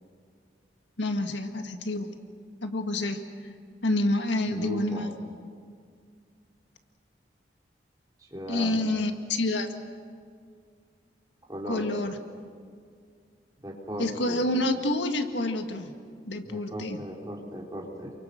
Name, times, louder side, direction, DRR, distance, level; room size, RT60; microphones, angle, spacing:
voice 1, 1.0-2.2 2.6-3.2 3.8-5.1 8.5-9.7 11.7-12.1 14.0-15.9 16.3-17.0, left 1 dB, 85° left, 6 dB, 1.8 m, -28 dB
voice 2, 4.5-5.1 8.2-8.8 11.4-11.9 13.6-14.5 16.4-18.1, equal, 20° right, -2 dB, 3.8 m, -37 dB
28.5 x 24.0 x 6.6 m, 2.1 s
head